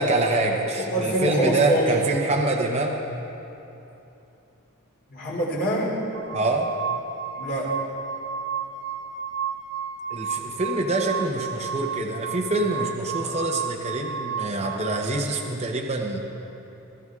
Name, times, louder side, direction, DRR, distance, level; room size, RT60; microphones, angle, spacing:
voice 1, 0.0-3.1 6.3-6.7 10.1-16.2, right 2 dB, 30° right, 1 dB, 0.9 m, -25 dB
voice 2, 0.8-1.9 5.1-5.9 7.3-7.7, right 1 dB, 50° left, -5 dB, 3.3 m, -25 dB
sound 1, 6.1-15.0, right 6 dB, 65° right, 1.3 m, -32 dB
21.0 x 14.0 x 3.7 m, 3.0 s
head